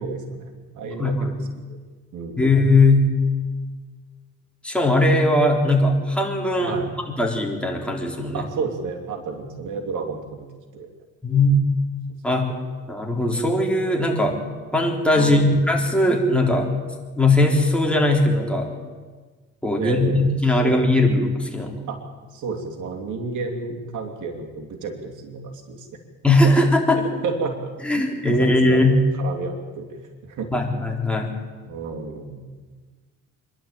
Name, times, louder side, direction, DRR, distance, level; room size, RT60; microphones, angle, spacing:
voice 1, 0.0-1.8 2.1-2.5 6.6-6.9 8.3-10.5 10.7-10.9 12.3-12.4 15.1-15.6 19.8-21.1 21.9-22.0 22.3-25.9 26.9-30.5 31.6-32.4, right 4 dB, 75° right, 3 dB, 3.2 m, -32 dB
voice 2, 1.0-1.3 2.4-3.1 4.6-6.8 7.2-8.4 11.2-11.6 12.2-12.5 12.9-14.4 14.7-16.7 17.2-18.7 19.6-21.8 26.2-27.0 27.8-29.0 30.5-31.3, left 2 dB, 5° left, 0 dB, 4.0 m, -19 dB
26.0 x 12.0 x 9.1 m, 1.4 s
cardioid pair, 90°, 30 cm